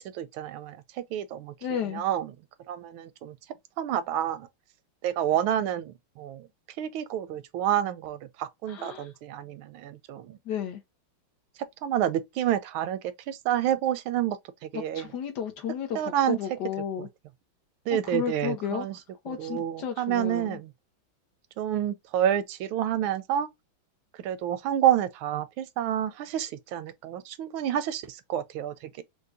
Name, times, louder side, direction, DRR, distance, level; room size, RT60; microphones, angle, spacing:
voice 1, 0.0-1.5 1.9-2.3 2.7-3.3 3.8-4.5 5.0-6.5 6.8-10.4 11.8-14.4 14.6-15.1 15.9-16.4 17.9-18.9 19.3-20.7 21.6-23.5 24.2-29.0, right 11 dB, 85° right, 1.4 m, -29 dB
voice 2, 1.6-2.0 8.7-9.1 10.4-10.8 14.7-17.1 17.9-18.9 19.2-20.6, left 8 dB, 60° left, 1.3 m, -33 dB
4.7 x 2.2 x 2.4 m
omnidirectional pair, 2.2 m